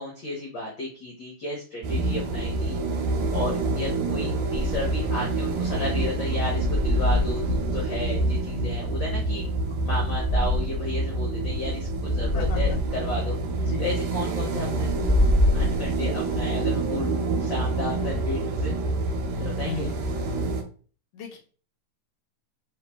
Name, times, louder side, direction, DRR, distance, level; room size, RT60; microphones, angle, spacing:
voice 1, 0.0-2.8 3.3-9.4 9.8-13.4 13.8-14.9 15.5-18.7 19.4-19.9, left 2 dB, 70° left, -1 dB, 1.1 m, -33 dB
sound 1, 1.8-20.6, right 2 dB, 85° right, 2.3 m, -27 dB
sound 2, 4.5-5.0 6.5-8.1 10.1-10.8 12.2-12.9 14.8-16.2, left 2 dB, 20° right, 0.3 m, -25 dB
voice 2, 12.3-12.8 13.6-13.9 19.7-20.0 21.1-21.4, left 4 dB, 90° left, 1 dB, 1.3 m, -34 dB
4.9 x 2.9 x 3.4 m, 0.40 s
omnidirectional pair, 3.5 m